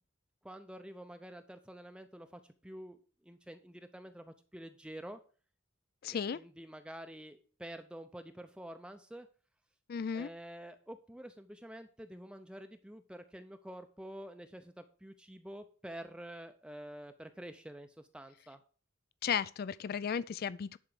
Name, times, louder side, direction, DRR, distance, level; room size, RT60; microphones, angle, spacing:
voice 1, 0.4-5.2 6.1-9.3 10.1-18.6, right 1 dB, 5° right, 0.5 m, -48 dB
voice 2, 6.0-6.4 9.9-10.3 19.2-20.8, left 7 dB, 50° left, 0.4 m, -34 dB
11.0 x 4.6 x 6.6 m
head